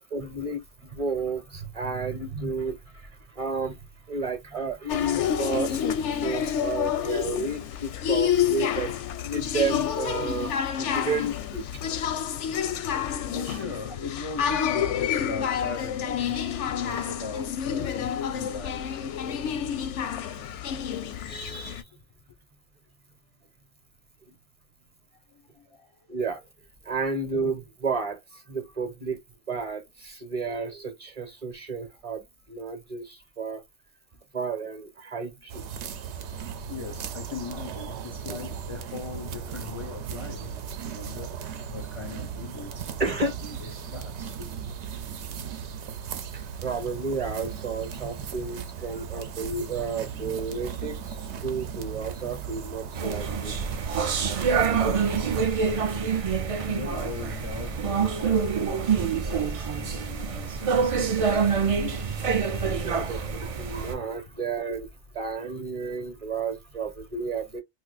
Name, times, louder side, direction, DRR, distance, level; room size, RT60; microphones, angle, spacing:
voice 1, 0.0-3.1 3.4-3.7 4.1-5.8 6.1-8.9 9.2-11.6 13.5-13.6 21.3-21.8 26.1-26.4 26.8-28.2 28.5-29.2 29.5-32.2 32.5-33.6 34.3-35.6 38.3-38.4 43.0-43.3 46.6-51.2 51.4-53.5 62.8-64.9 65.1-67.6, right 4 dB, 35° right, 0.8 m, -31 dB
sound 1, 4.9-21.8, left 9 dB, 85° left, 0.9 m, -29 dB
voice 2, 13.3-19.9 25.6-25.9 36.7-40.5 40.8-44.5 54.7-62.1, left 4 dB, 40° left, 0.4 m, -39 dB
sound 2, 35.5-55.4, right 7 dB, 80° right, 0.9 m, -37 dB
sound 3, 52.9-63.9, right 6 dB, 60° right, 0.3 m, -26 dB
2.6 x 2.4 x 3.9 m
omnidirectional pair, 1.2 m